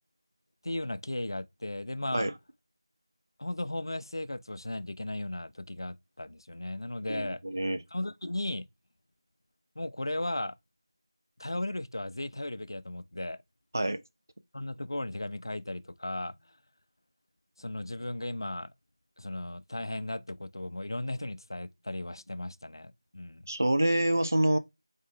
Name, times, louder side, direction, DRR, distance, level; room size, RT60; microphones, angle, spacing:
voice 1, 0.6-2.3 3.4-7.4 7.9-8.7 9.8-10.6 11.4-13.4 14.5-16.4 17.6-18.7 19.2-23.5, left 1 dB, 60° left, 0.4 m, -36 dB
voice 2, 7.1-7.8 13.7-14.0 23.5-24.6, right 1 dB, 35° right, 0.3 m, -27 dB
3.8 x 3.7 x 3.1 m
figure-of-eight pair, 175°, 3 cm